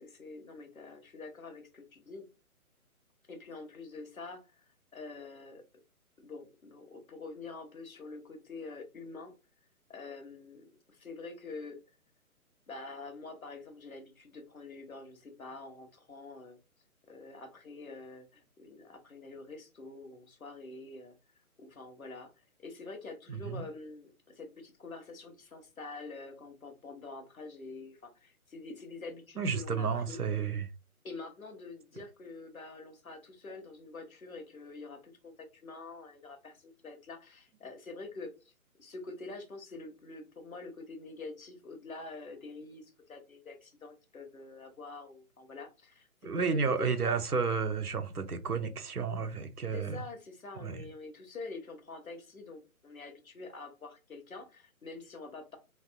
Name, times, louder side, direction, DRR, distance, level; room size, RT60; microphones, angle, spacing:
voice 1, 0.0-2.3 3.3-4.6 4.9-5.6 6.2-9.3 9.9-11.8 12.7-16.6 17.1-21.1 21.6-22.3 22.6-30.2 31.0-38.5 38.8-47.2 49.7-55.6, left 3 dB, 70° left, 1.1 m, -46 dB
voice 2, 23.3-23.6 29.4-30.7 46.2-50.0 50.6-50.8, right 5 dB, 90° right, 0.7 m, -32 dB
3.4 x 2.7 x 2.2 m
figure-of-eight pair, 140°, 44 cm